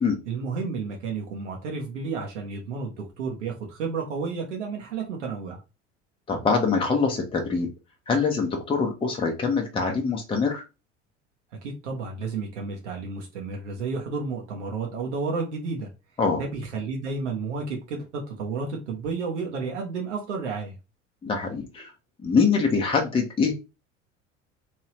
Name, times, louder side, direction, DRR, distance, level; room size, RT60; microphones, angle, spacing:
voice 1, 0.3-5.6 11.6-15.9 16.4-20.8, right 4 dB, 70° right, 1 dB, 1.0 m, -31 dB
voice 2, 6.3-7.7 8.1-10.6 16.2-16.4 21.2-21.9 22.2-23.5, left 5 dB, 15° left, 1 dB, 0.8 m, -24 dB
3.1 x 2.7 x 3.0 m, 0.28 s
figure-of-eight pair, 70°, 37 cm